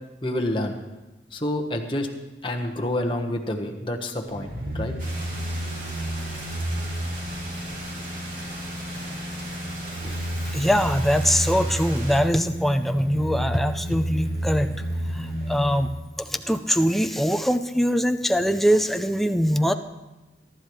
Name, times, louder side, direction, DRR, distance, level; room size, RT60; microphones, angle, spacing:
voice 1, 0.2-0.8 1.3-2.1 2.4-4.9, left 1 dB, 30° left, 2 dB, 1.2 m, -28 dB
sound 1, 4.3-15.9 16.2-16.3, equal, 70° right, 5.5 m, -31 dB
sound 2, 5.0-12.2, right 1 dB, 50° right, 2.8 m, -38 dB
voice 2, 10.4-14.7 15.1-15.9 16.2-19.7, equal, ahead, 7 dB, 0.5 m, -22 dB
22.0 x 11.5 x 3.2 m, 1.1 s
head